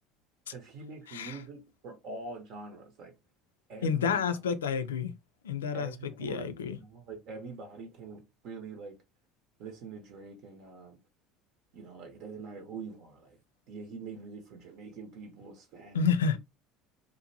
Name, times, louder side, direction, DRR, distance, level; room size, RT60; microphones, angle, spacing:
voice 1, 0.5-3.1 3.7-4.2 5.7-9.0 9.6-11.0 11.7-13.4 13.7-16.4, right 4 dB, 60° right, 0.8 m, -44 dB
voice 2, 3.8-5.1 5.4-6.8 15.9-16.4, left 6 dB, 85° left, 0.3 m, -29 dB
2.7 x 2.1 x 2.6 m
hypercardioid pair, 75°, 0 cm